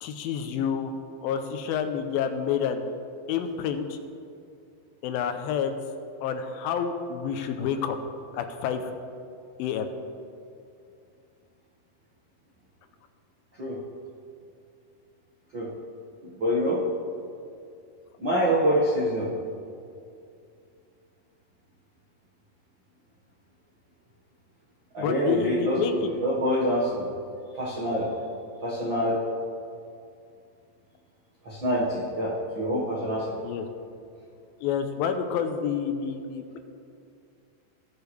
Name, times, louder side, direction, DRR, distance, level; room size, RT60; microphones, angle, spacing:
voice 1, 0.0-0.9 1.2-2.8 3.3-4.0 5.0-5.7 6.2-8.0 8.3-8.9 9.6-9.9 25.0-26.1 33.4-33.7 34.6-36.6, left 7 dB, 85° left, 8 dB, 2.4 m, -28 dB
voice 2, 16.4-16.8 18.2-19.3 24.9-27.1 27.5-28.1 28.6-29.2 31.4-33.3, equal, 55° right, -8 dB, 1.4 m, -26 dB
20.0 x 6.8 x 3.2 m, 2.5 s
omnidirectional pair, 4.2 m